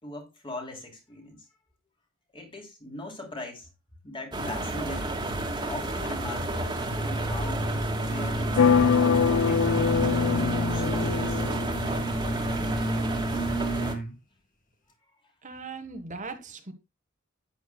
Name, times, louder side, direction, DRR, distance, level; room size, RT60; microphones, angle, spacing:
voice 1, 0.0-1.5 2.3-3.7 4.0-5.1 5.6-6.6 7.0-7.7 8.0-8.6 8.9-11.4, left 1 dB, 25° left, 3.2 m, -41 dB
sound 1, 4.3-14.0, right 2 dB, 20° right, 2.1 m, -31 dB
sound 2, 6.8-14.1, right 1 dB, 40° left, 1.9 m, -31 dB
sound 3, 8.6-12.3, left 6 dB, 85° left, 0.4 m, -24 dB
voice 2, 15.4-16.7, right 4 dB, 40° right, 1.4 m, -39 dB
10.5 x 9.0 x 2.2 m
head